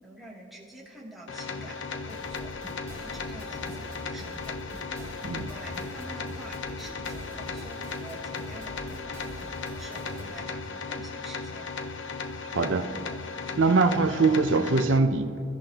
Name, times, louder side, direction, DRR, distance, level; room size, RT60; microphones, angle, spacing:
voice 1, 0.0-2.5 3.0-4.6 5.3-9.2 9.8-11.7, right 1 dB, ahead, 2.7 m, -47 dB
sound 1, 1.3-15.0, left 4 dB, 85° left, 0.9 m, -36 dB
sound 2, 2.1-10.4, equal, 15° right, 2.3 m, -45 dB
voice 2, 12.5-13.0 13.6-15.4, right 3 dB, 90° right, 0.7 m, -23 dB
25.5 x 13.5 x 2.9 m
head